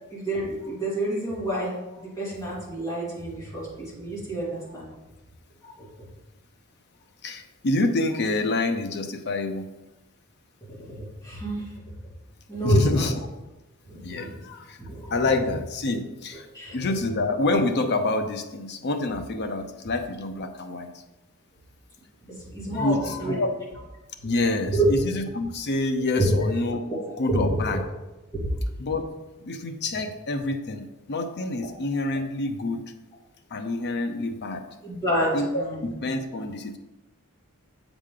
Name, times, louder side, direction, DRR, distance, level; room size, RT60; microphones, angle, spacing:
voice 1, 0.1-4.9 5.6-5.9 10.7-11.7 12.5-13.1 13.8-14.3 14.8-15.3 16.5-16.8 22.3-23.4 24.7-24.9 26.1-26.5 26.9-27.4 34.8-35.9, right 1 dB, 15° left, -7 dB, 2.5 m, -29 dB
voice 2, 7.2-9.7 12.6-13.3 14.0-14.8 15.1-16.5 16.7-20.9 22.7-23.5 24.2-26.8 27.2-27.8 28.8-29.0 29.4-32.8 33.5-34.6 35.3-36.8, left 2 dB, 50° left, 7 dB, 0.7 m, -27 dB
7.4 x 5.0 x 3.8 m, 1.0 s
head